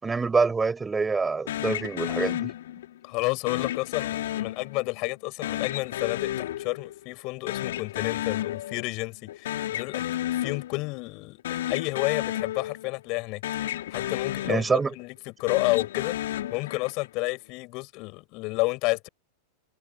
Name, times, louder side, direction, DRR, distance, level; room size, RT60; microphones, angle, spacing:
voice 1, 0.0-2.5 14.5-14.9, right 4 dB, 15° right, 5.1 m, -25 dB
sound 1, 1.5-3.0 3.5-5.0 5.4-7.2 7.5-9.0 9.3-11.0 11.4-13.2 13.4-15.0 15.4-17.1, left 13 dB, 60° left, 2.7 m, -32 dB
voice 2, 3.0-10.0 10.4-13.4 13.9-14.6 15.0-16.1 16.5-19.1, left 25 dB, 40° left, 6.4 m, -30 dB
figure-of-eight pair, 90°, 0 cm